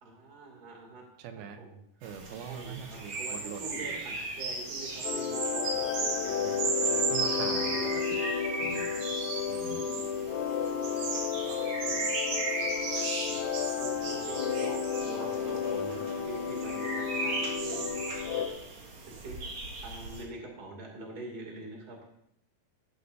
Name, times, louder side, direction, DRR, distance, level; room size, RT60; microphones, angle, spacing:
voice 1, 0.0-1.0 1.4-1.7 2.4-7.1 7.6-7.8 8.6-8.9 9.6-10.1 11.9-12.0 13.3-18.5 19.1-19.4 19.8-22.1, right 2 dB, 25° right, -1 dB, 2.7 m, -45 dB
voice 2, 1.2-1.6 2.0-4.1 6.9-8.2 8.6-8.9 9.5-9.9, right 7 dB, 80° right, 7 dB, 2.8 m, -42 dB
sound 1, 2.0-20.2, right 3 dB, 50° right, 2.8 m, -35 dB
sound 2, 5.0-18.5, left 7 dB, 70° left, 1.9 m, -32 dB
15.0 x 11.5 x 2.7 m, 0.75 s
omnidirectional pair, 4.4 m